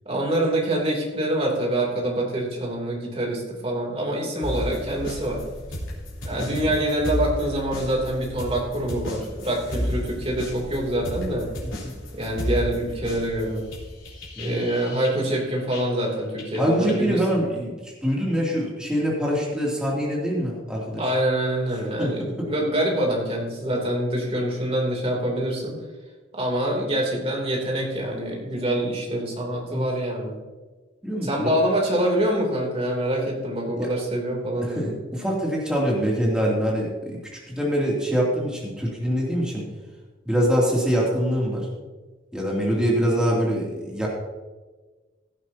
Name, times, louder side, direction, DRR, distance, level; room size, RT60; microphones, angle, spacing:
voice 1, 0.0-5.4 6.2-11.5 12.1-13.6 14.4-17.5 21.0-25.7 26.3-30.4 31.2-35.0, right 1 dB, 30° right, -1 dB, 3.0 m, -25 dB
sound 1, 4.4-16.1 16.4-17.1, equal, 80° left, 4.0 m, -33 dB
voice 2, 11.6-12.0 14.4-14.6 16.6-21.0 22.0-22.5 29.7-29.8 31.0-31.5 33.8-33.9 34.6-39.6 40.2-41.7 42.3-44.1, equal, 5° right, -4 dB, 2.7 m, -24 dB
17.0 x 11.5 x 2.8 m, 1.3 s
head